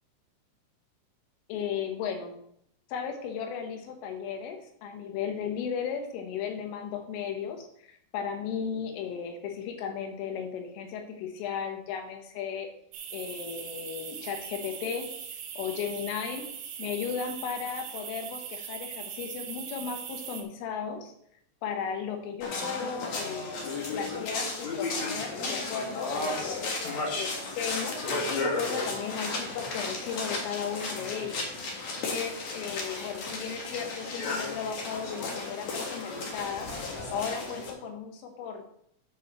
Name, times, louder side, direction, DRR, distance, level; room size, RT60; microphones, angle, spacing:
voice 1, 1.5-2.4 2.9-12.7 13.1-15.1 15.6-16.5 16.8-21.1 21.6-36.7 37.1-38.7, left 7 dB, 80° left, 4 dB, 3.7 m, -35 dB
sound 1, 12.9-20.4, right 8 dB, 70° right, 2.2 m, -40 dB
sound 2, 22.4-37.7, left 3 dB, 65° left, 1.8 m, -34 dB
8.7 x 6.7 x 4.3 m, 0.71 s
omnidirectional pair, 5.7 m